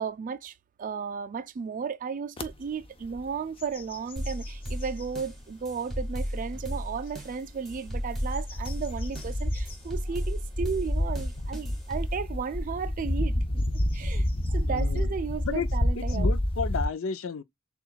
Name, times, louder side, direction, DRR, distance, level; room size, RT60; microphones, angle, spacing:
voice 1, 0.0-13.6 13.9-14.3 14.5-16.3, right 6 dB, 40° right, 0.3 m, -34 dB
sound 1, 2.4-2.5 3.0-3.3 3.6-5.1 5.7-5.8 7.5-16.9, left 1 dB, 30° left, 0.6 m, -29 dB
sound 2, 4.2-12.2, equal, ahead, 1.5 m, -35 dB
voice 2, 14.7-15.1 15.4-15.7 16.0-17.4, left 5 dB, 75° left, 0.5 m, -32 dB
6.7 x 2.3 x 2.4 m
head